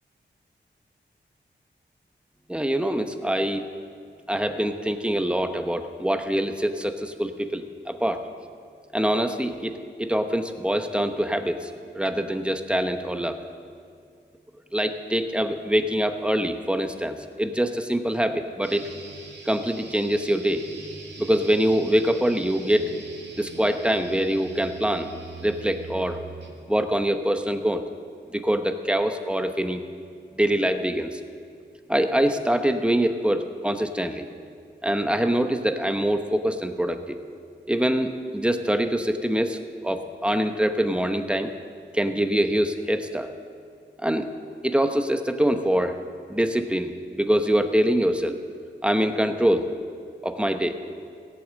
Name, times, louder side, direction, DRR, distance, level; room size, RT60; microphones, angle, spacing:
voice 1, 2.5-3.6 4.3-8.2 8.9-11.7 11.9-13.4 14.7-18.9 19.5-20.6 21.2-22.9 23.4-25.1 25.4-26.2 26.7-27.8 28.3-29.8 30.3-31.2 31.9-34.2 34.8-37.2 37.7-39.6 39.8-41.5 41.9-43.3 44.0-44.3 44.6-46.0 46.3-48.4 48.8-49.7 50.2-50.8, right 1 dB, 5° right, 7 dB, 0.9 m, -24 dB
sound 1, 18.6-26.6, right 4 dB, 65° right, 2.0 m, -42 dB
17.0 x 8.5 x 7.6 m, 2.2 s
wide cardioid pair, 75°, 20 cm